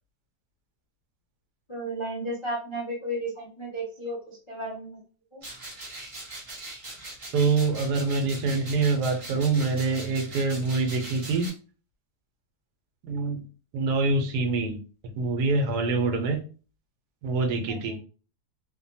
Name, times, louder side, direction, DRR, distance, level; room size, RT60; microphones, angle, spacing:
voice 1, 1.7-5.0 5.3-5.5 17.7-18.0, right 1 dB, 45° left, -4 dB, 0.3 m, -34 dB
sound 1, 5.4-11.5, right 2 dB, 50° right, 0.3 m, -41 dB
voice 2, 7.3-11.5 13.1-13.4 13.7-14.8 15.2-16.4 17.2-17.9, right 3 dB, 80° right, 4 dB, 1.2 m, -25 dB
3.2 x 2.1 x 2.6 m, 0.36 s
omnidirectional pair, 1.8 m